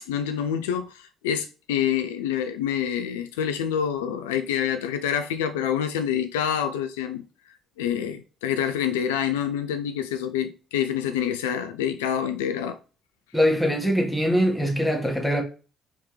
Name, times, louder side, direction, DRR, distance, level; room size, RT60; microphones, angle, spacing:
voice 1, 0.0-7.2 7.8-12.8, left 9 dB, 70° left, 0.3 m, -27 dB
voice 2, 13.3-15.4, equal, 5° left, 1.4 m, -22 dB
4.2 x 3.5 x 3.1 m
figure-of-eight pair, 45°, 0 cm